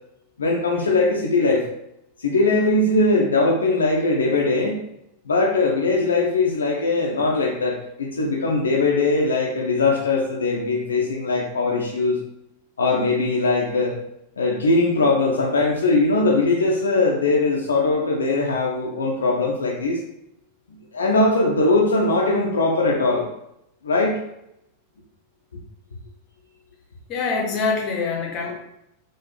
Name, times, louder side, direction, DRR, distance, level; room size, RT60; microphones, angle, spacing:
voice 1, 0.4-1.7 2.2-4.8 5.3-12.2 12.8-14.0 14.4-20.0 20.9-23.3 23.8-24.2, left 3 dB, 70° left, -1 dB, 0.5 m, -20 dB
voice 2, 27.1-28.5, left 4 dB, 35° left, 1 dB, 0.8 m, -24 dB
3.8 x 2.6 x 2.9 m, 0.82 s
figure-of-eight pair, 90°, 0 cm